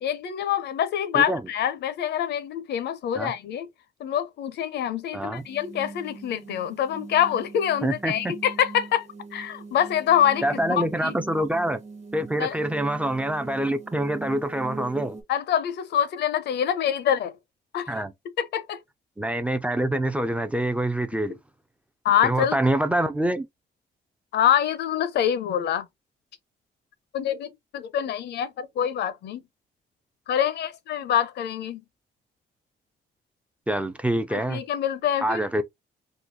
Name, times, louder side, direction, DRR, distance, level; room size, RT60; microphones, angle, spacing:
voice 1, 0.0-3.7 4.0-11.2 12.4-12.5 15.3-17.3 17.7-18.0 18.4-18.8 22.0-22.6 24.3-25.9 27.1-29.4 30.3-31.8 34.3-35.4, left 10 dB, 80° left, 0.7 m, -25 dB
voice 2, 5.1-5.4 7.8-8.3 10.4-11.8 12.1-15.2 17.9-18.1 19.2-21.4 22.2-23.5 33.7-34.6 35.2-35.6, right 1 dB, 10° right, 0.3 m, -26 dB
sound 1, 5.3-15.2, right 4 dB, 40° right, 1.2 m, -41 dB
3.7 x 2.3 x 2.6 m
cardioid pair, 150°, 17 cm